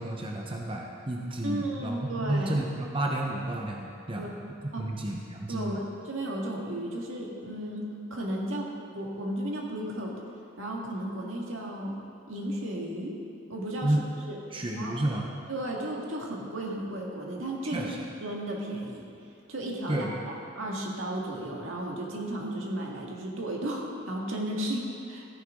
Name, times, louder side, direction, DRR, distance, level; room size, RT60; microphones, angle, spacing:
voice 1, 0.0-4.2 4.8-5.8 13.8-14.0 14.5-15.2 17.7-18.0 19.9-20.2, right 1 dB, 25° right, 0 dB, 0.9 m, -31 dB
voice 2, 1.4-2.6 4.2-4.3 4.7-4.9 5.5-8.7 8.9-10.2 10.6-12.0 12.3-13.2 13.5-14.4 14.7-15.0 15.5-17.9 18.2-19.1 19.5-25.3, right 1 dB, 75° right, -1 dB, 1.9 m, -34 dB
14.5 x 10.0 x 3.7 m, 2.6 s
head